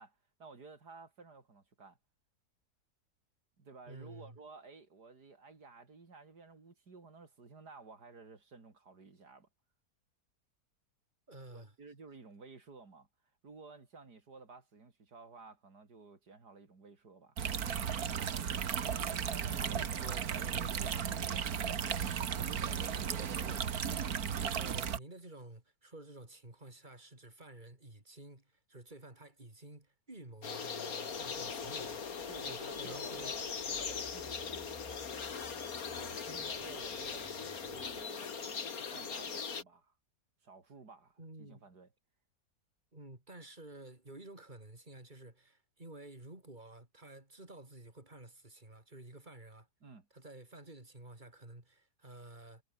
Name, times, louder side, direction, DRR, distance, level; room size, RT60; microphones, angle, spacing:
voice 1, 0.0-2.0 3.6-9.5 11.5-13.1 13.4-17.4 24.0-24.4 32.3-35.0 35.9-39.9 40.4-41.9 49.8-50.1, right 4 dB, 85° right, 3.9 m, -54 dB
voice 2, 3.9-4.4 11.3-11.7 19.4-24.0 24.4-33.3 41.2-41.7 42.9-49.7 50.1-52.6, right 2 dB, 30° right, 4.8 m, -52 dB
sound 1, 17.4-25.0, right 8 dB, 70° right, 1.8 m, -35 dB
sound 2, 30.4-39.6, left 6 dB, 65° left, 2.3 m, -40 dB
sound 3, 31.1-38.0, left 1 dB, 15° left, 3.5 m, -58 dB
omnidirectional pair, 1.7 m